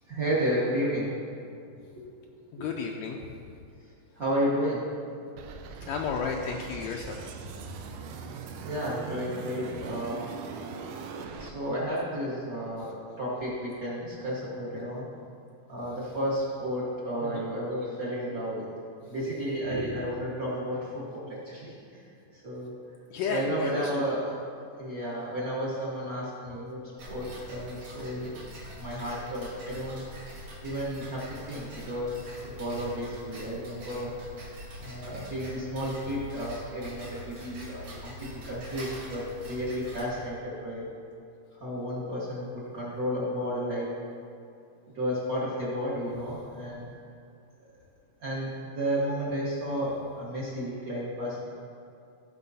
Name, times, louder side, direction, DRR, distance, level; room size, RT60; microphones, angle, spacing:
voice 1, 0.1-1.2 2.3-2.7 4.2-4.8 8.6-10.3 11.4-15.1 15.7-18.7 19.0-22.0 22.3-22.7 23.3-24.3 24.8-28.3 28.8-30.0 30.6-34.1 34.8-40.9 41.6-43.9 44.9-46.9 48.2-51.5, equal, 45° right, -7 dB, 1.1 m, -32 dB
voice 2, 2.5-3.2 5.9-7.2 17.2-17.4 23.1-23.9, left 6 dB, 85° left, 1 dB, 1.6 m, -32 dB
sound 1, 5.4-11.5, right 5 dB, 90° right, 2.3 m, -41 dB
Tick-tock, 27.0-40.0, equal, 70° right, 3.8 m, -44 dB
15.0 x 5.4 x 4.1 m, 2.4 s
omnidirectional pair, 3.8 m